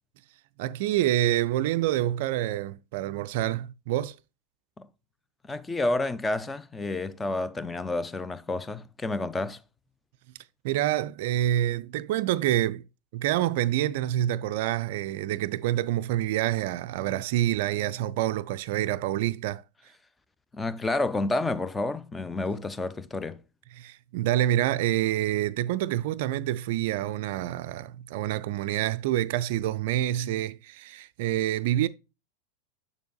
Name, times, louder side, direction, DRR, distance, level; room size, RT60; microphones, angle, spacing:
voice 1, 0.6-4.2 10.6-12.8 13.1-19.6 23.7-31.9, right 13 dB, 55° right, 0.3 m, -27 dB
voice 2, 5.5-9.6 20.5-23.4, left 2 dB, 15° left, 0.5 m, -30 dB
6.9 x 6.9 x 2.3 m
figure-of-eight pair, 90°, 0 cm